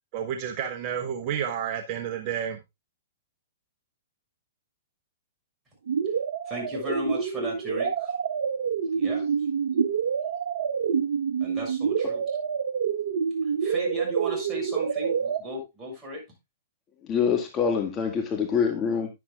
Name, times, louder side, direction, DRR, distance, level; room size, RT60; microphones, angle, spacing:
voice 1, 0.1-2.6, right 8 dB, 45° right, 1.1 m, -30 dB
sound 1, 5.9-15.4, right 7 dB, 70° right, 0.9 m, -27 dB
voice 2, 6.4-8.2 8.8-9.5 11.4-12.2 13.4-16.2, right 1 dB, 15° right, 6.6 m, -35 dB
voice 3, 17.0-19.1, left 6 dB, 25° left, 1.7 m, -25 dB
10.5 x 10.5 x 2.3 m
hypercardioid pair, 125°, 0 cm